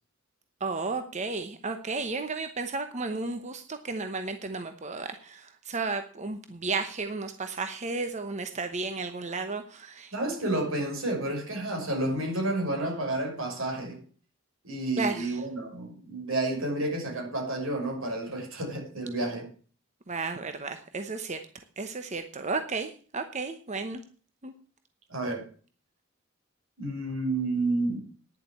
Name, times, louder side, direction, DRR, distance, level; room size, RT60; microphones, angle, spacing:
voice 1, 0.6-10.1 15.0-15.4 20.1-21.4 21.8-24.0 24.4-24.5, right 3 dB, 35° right, 0.9 m, -33 dB
voice 2, 10.1-14.0 14.6-19.5 25.1-25.4 26.8-28.1, right 2 dB, 90° right, 6.0 m, -30 dB
10.0 x 7.4 x 8.4 m
head